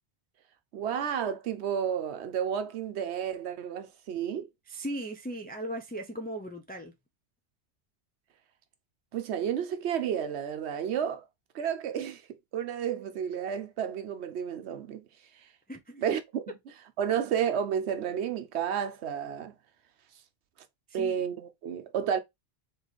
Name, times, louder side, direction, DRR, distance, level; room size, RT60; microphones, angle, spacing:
voice 1, 0.7-4.5 9.1-11.2 11.5-15.0 15.4-15.5 15.9-16.5 17.0-19.5 20.9-22.2, right 8 dB, 75° right, 0.9 m, -31 dB
voice 2, 4.7-6.9 15.7-15.9 20.9-21.2, right 1 dB, 10° left, 0.4 m, -37 dB
3.9 x 3.2 x 4.0 m
omnidirectional pair, 1.1 m